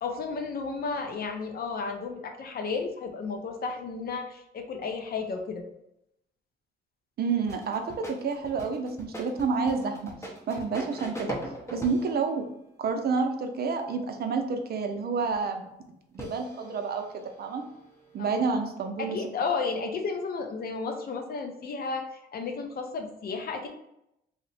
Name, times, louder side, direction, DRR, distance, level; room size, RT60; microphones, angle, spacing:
voice 1, 0.0-5.6 18.2-18.4 19.0-23.7, left 4 dB, 50° left, 4 dB, 0.5 m, -33 dB
voice 2, 7.2-10.1 10.5-11.4 11.7-12.5 12.8-15.7 16.1-17.6 18.1-19.2, right 4 dB, 50° right, 5 dB, 0.5 m, -29 dB
sound 1, 7.5-12.3 15.3-15.4 16.1-18.2, equal, 15° left, 0.7 m, -41 dB
2.8 x 2.1 x 4.0 m, 0.83 s
cardioid pair, 90°, 20 cm